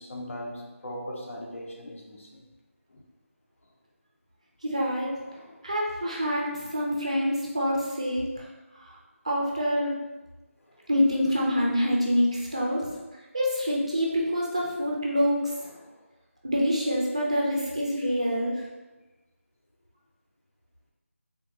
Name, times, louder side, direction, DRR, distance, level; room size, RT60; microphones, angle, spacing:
voice 1, 0.0-2.5 2.9-3.0 5.3-5.7 10.8-10.9 15.6-16.0 18.4-18.5, equal, 65° left, -1 dB, 0.7 m, -40 dB
voice 2, 4.6-5.1 5.6-8.4 8.8-9.0 9.2-9.9 10.9-12.9 13.3-15.5 16.4-18.6, equal, 25° right, -3 dB, 0.4 m, -26 dB
3.5 x 2.6 x 2.8 m, 1.1 s
figure-of-eight pair, 175°, 8 cm